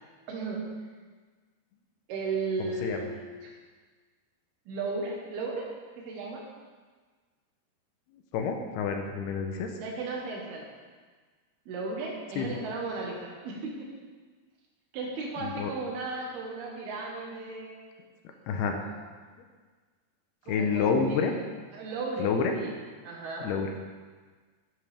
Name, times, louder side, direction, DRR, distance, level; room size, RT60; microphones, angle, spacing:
voice 1, 0.3-0.7 2.1-3.5 4.7-5.7 6.0-6.4 9.8-10.7 11.7-13.9 14.9-17.8 18.7-19.0 20.4-21.3 21.7-22.8 23.0-23.5, right 3 dB, 70° right, -1 dB, 3.2 m, -35 dB
voice 2, 2.6-3.1 8.3-9.7 12.4-12.5 15.4-15.7 18.5-18.8 20.5-21.3 22.2-22.5 23.4-23.7, left 6 dB, 80° left, 4 dB, 2.6 m, -28 dB
11.0 x 10.5 x 3.5 m, 1.5 s
omnidirectional pair, 4.8 m